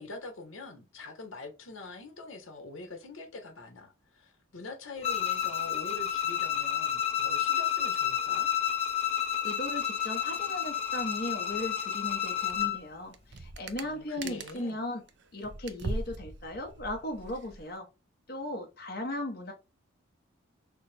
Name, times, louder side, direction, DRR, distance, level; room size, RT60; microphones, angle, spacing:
voice 1, 0.0-8.5 13.8-14.8, left 2 dB, 80° left, 1.1 m, -44 dB
Bowed string instrument, 5.0-12.8, left 10 dB, 30° left, 0.6 m, -30 dB
voice 2, 9.4-15.0 15.3-17.9 18.3-19.5, left 1 dB, 50° left, 0.9 m, -37 dB
sound 1, 12.5-12.8 13.1-14.7 15.1-17.7, right 3 dB, 55° right, 0.6 m, -40 dB
6.4 x 2.2 x 3.3 m
head